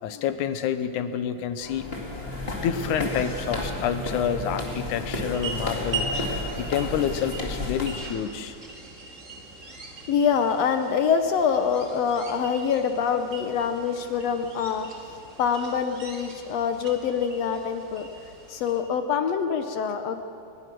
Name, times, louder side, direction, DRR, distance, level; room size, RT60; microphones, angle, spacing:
voice 1, 0.0-1.9 2.6-6.1 6.6-8.5, left 8 dB, 90° left, 10 dB, 2.4 m, -28 dB
sound 1, 1.6-8.1, left 2 dB, 20° left, 2.1 m, -32 dB
sound 2, 5.1-18.8, right 3 dB, 30° right, 2.0 m, -40 dB
voice 2, 10.1-14.9 15.4-18.1 18.5-20.2, left 7 dB, 70° left, 7 dB, 1.8 m, -25 dB
21.5 x 21.0 x 6.2 m, 2.5 s
omnidirectional pair, 3.4 m